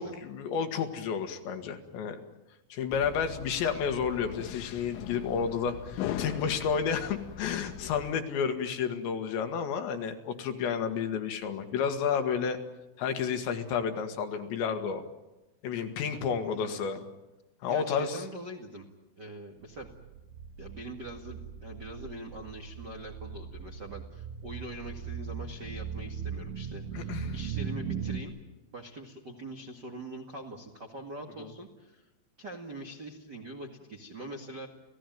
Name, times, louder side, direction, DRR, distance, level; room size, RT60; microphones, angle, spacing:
voice 1, 0.0-2.2 2.7-12.6 13.0-15.0 15.6-17.0 17.6-18.2 26.9-27.4 31.4-31.5, left 6 dB, 70° left, 6 dB, 3.8 m, -31 dB
sound 1, 2.9-8.1, left 10 dB, 90° left, 3.6 m, -40 dB
voice 2, 16.4-16.9 17.6-18.9 19.2-19.9 20.6-28.4 28.7-32.1 32.4-34.7, right 1 dB, 50° right, 1 dB, 1.3 m, -43 dB
sound 2, 19.8-28.2, right 7 dB, 80° right, 3.6 m, -39 dB
29.5 x 16.5 x 9.3 m, 1.0 s
omnidirectional pair, 5.5 m